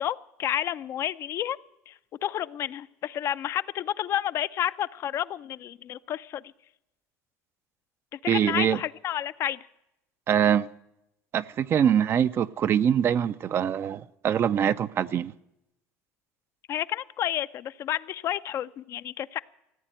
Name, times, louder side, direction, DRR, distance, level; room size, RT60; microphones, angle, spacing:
voice 1, 0.0-1.6 1.9-6.4 8.1-9.7 16.7-19.4, left 11 dB, 50° left, 0.5 m, -30 dB
voice 2, 8.3-8.8 10.3-10.7 11.3-15.3, right 9 dB, 40° right, 0.5 m, -24 dB
15.5 x 8.8 x 9.2 m
supercardioid pair, 100°, 6 cm